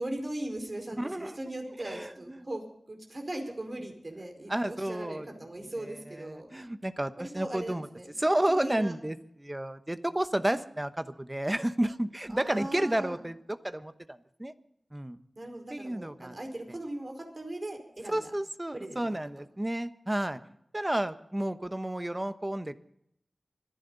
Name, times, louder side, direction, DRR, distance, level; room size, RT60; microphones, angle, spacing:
voice 1, 0.0-6.5 7.2-8.2 8.6-9.0 12.3-13.2 15.4-18.3 18.7-19.0 19.4-19.5, right 1 dB, 45° right, 3 dB, 4.7 m, -39 dB
voice 2, 1.0-1.4 1.8-2.4 4.5-5.3 6.1-7.9 8.2-14.5 14.9-15.2 15.7-16.3 18.1-20.4 20.7-22.8, right 1 dB, 20° right, 11 dB, 1.0 m, -31 dB
25.5 x 11.0 x 4.0 m, 0.74 s
wide cardioid pair, 50°, 0 cm